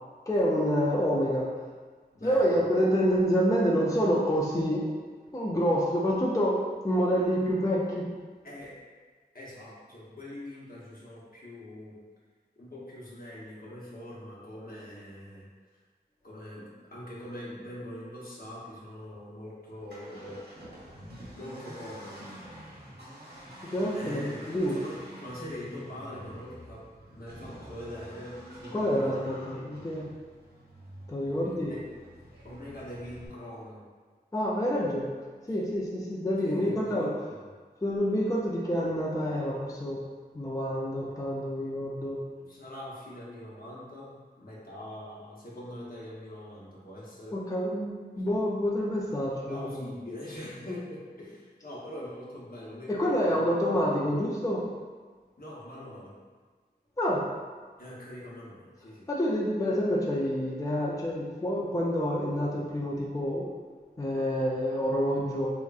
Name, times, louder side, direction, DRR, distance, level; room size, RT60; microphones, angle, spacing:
voice 1, 0.3-1.5 2.2-5.0 5.3-8.1 23.7-24.8 28.7-30.1 31.1-31.7 34.3-35.1 35.5-37.1 37.8-40.0 40.3-42.2 47.3-49.8 52.9-54.6 57.0-57.3 59.1-63.5 64.0-65.5, equal, 20° left, -4 dB, 0.4 m, -27 dB
voice 2, 2.1-2.7 8.4-8.7 9.3-12.0 12.6-15.5 16.2-20.4 21.3-22.3 23.9-26.8 27.1-29.2 29.5-29.7 31.4-31.8 32.4-33.8 36.4-37.4 42.4-47.4 49.5-53.8 55.4-56.1 57.8-59.1, left 1 dB, 60° left, -6 dB, 0.8 m, -43 dB
Accelerating revving vroom, 19.7-33.3, equal, 80° right, 1.0 m, -47 dB
3.3 x 2.9 x 2.4 m, 1.5 s
wide cardioid pair, 55°, 17 cm